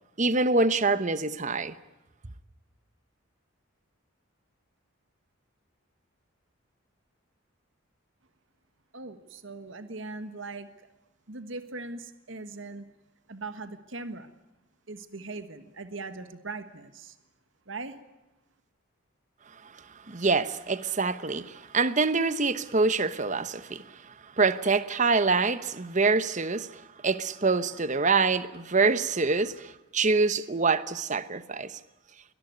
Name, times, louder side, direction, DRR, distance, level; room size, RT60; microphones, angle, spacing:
voice 1, 0.2-1.7 19.6-19.7 20.1-31.8, right 4 dB, 35° right, 0.9 m, -26 dB
voice 2, 8.9-10.9 11.3-12.9 13.3-14.3 14.9-17.2 17.7-18.0, right 3 dB, 65° right, 1.5 m, -40 dB
23.0 x 19.0 x 9.4 m
head